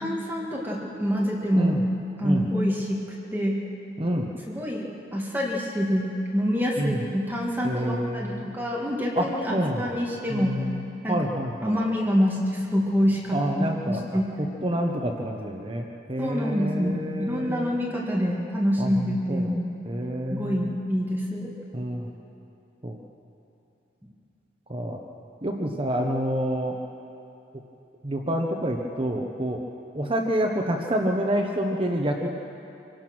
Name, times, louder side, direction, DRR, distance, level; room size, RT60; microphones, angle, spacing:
voice 1, 0.0-1.7 2.2-3.0 3.3-3.6 4.5-10.6 11.0-11.2 11.6-13.4 13.8-14.3 16.2-19.7 20.3-21.5, equal, 10° right, -3 dB, 2.1 m, -26 dB
voice 2, 4.0-4.3 6.8-7.0 7.6-8.5 9.2-9.9 10.3-10.7 11.1-11.8 13.3-14.0 14.6-17.7 18.8-18.9 19.3-19.4 19.9-20.6 21.7-22.1 22.8-23.0 24.7-25.0 25.4-26.7 28.0-29.6 29.9-32.3, equal, 30° right, 1 dB, 1.1 m, -27 dB
26.5 x 17.0 x 6.2 m, 2.8 s
head